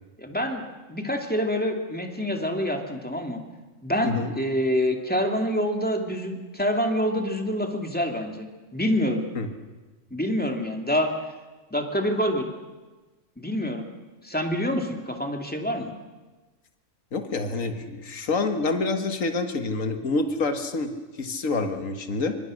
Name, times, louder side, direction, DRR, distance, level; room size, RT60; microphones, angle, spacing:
voice 1, 0.2-0.6 0.9-3.4 3.8-8.5 8.7-9.2 10.1-11.1 11.7-12.5 13.4-13.8 14.2-15.9, equal, 5° left, 3 dB, 2.6 m, -26 dB
voice 2, 17.1-20.9 21.2-22.4, left 3 dB, 80° left, 7 dB, 2.0 m, -27 dB
25.0 x 25.0 x 6.4 m, 1.2 s
omnidirectional pair, 1.3 m